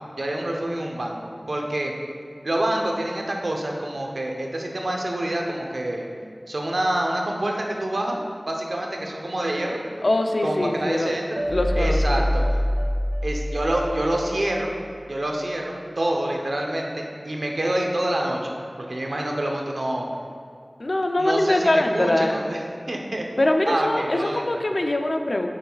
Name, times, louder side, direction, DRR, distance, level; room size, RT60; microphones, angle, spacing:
voice 1, 0.2-1.2 1.5-1.9 2.4-6.1 6.5-8.2 8.5-9.8 10.4-11.4 11.8-12.4 13.2-14.7 15.1-20.1 21.2-22.6 22.9-23.3 23.7-24.4, right 1 dB, 85° right, 0 dB, 0.8 m, -27 dB
voice 2, 10.0-11.1 11.5-12.2 20.8-22.4 23.4-25.5, left 1 dB, 70° left, 4 dB, 0.5 m, -23 dB
sound 1, 11.4-14.5, equal, 55° right, 0.5 m, -25 dB
9.2 x 6.3 x 2.4 m, 2.3 s
wide cardioid pair, 40°, 0 cm